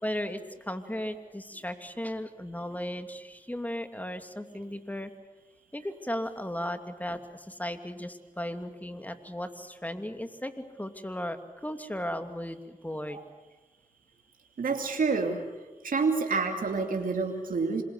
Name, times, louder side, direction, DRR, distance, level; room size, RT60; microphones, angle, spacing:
voice 1, 0.0-5.1 5.7-13.2, left 1 dB, 10° left, 7 dB, 2.8 m, -36 dB
voice 2, 14.6-15.4 15.8-17.8, right 4 dB, 80° right, 3 dB, 2.7 m, -28 dB
26.5 x 22.0 x 8.1 m, 1.2 s
cardioid pair, 50°, 14 cm